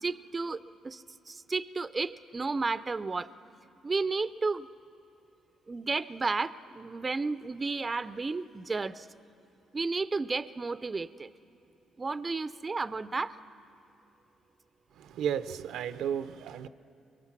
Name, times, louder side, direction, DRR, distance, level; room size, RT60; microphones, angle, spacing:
voice 1, 0.0-3.3 3.8-4.7 5.7-9.1 9.7-11.3 12.0-13.3, right 3 dB, 30° right, 15 dB, 0.4 m, -32 dB
voice 2, 15.0-16.7, right 9 dB, 80° right, 12 dB, 0.5 m, -33 dB
24.5 x 22.5 x 6.0 m, 2.8 s
cardioid pair, 90°, 0 cm